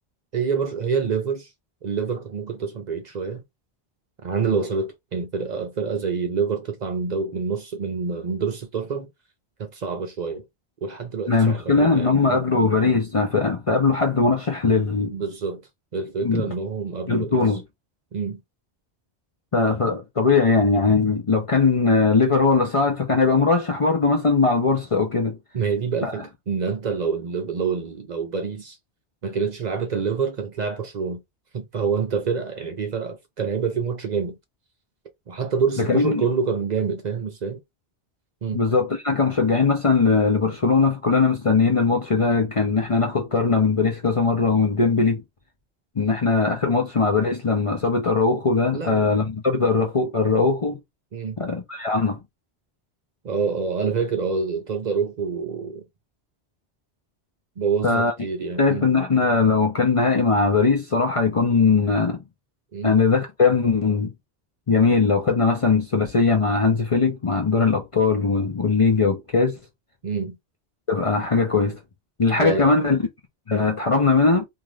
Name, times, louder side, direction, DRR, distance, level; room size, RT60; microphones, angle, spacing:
voice 1, 0.3-1.5 1.8-3.4 4.2-9.1 9.6-10.4 10.8-12.4 15.1-15.6 15.9-17.4 18.1-18.4 25.5-28.8 29.2-31.2 31.5-34.4 35.3-37.6 38.4-38.6 48.7-49.1 51.1-51.4 53.2-55.8 57.6-58.8 62.7-63.0 70.0-70.4 72.4-72.8, right 5 dB, 50° right, 0.6 m, -27 dB
voice 2, 11.3-15.1 16.2-16.5 17.1-17.6 19.5-25.4 26.0-26.1 35.8-36.3 38.5-45.2 46.0-50.8 51.4-52.2 57.8-58.1 58.6-62.2 62.8-64.1 64.7-69.6 70.9-71.8 72.2-73.0 73.5-74.5, left 4 dB, 40° left, 0.6 m, -20 dB
2.5 x 2.5 x 3.1 m
omnidirectional pair, 1.1 m